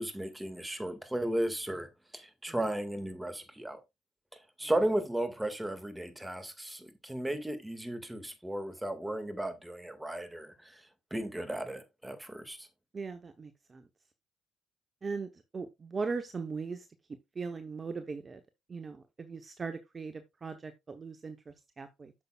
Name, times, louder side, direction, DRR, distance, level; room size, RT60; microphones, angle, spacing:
voice 1, 0.0-1.9 2.1-3.8 4.6-10.8 11.1-12.7, right 1 dB, 10° right, 2.0 m, -35 dB
voice 2, 12.9-13.9 15.0-16.9 17.3-18.4 18.7-22.1, right 4 dB, 35° right, 0.9 m, -39 dB
8.5 x 6.9 x 2.4 m
supercardioid pair, 60°, 0 cm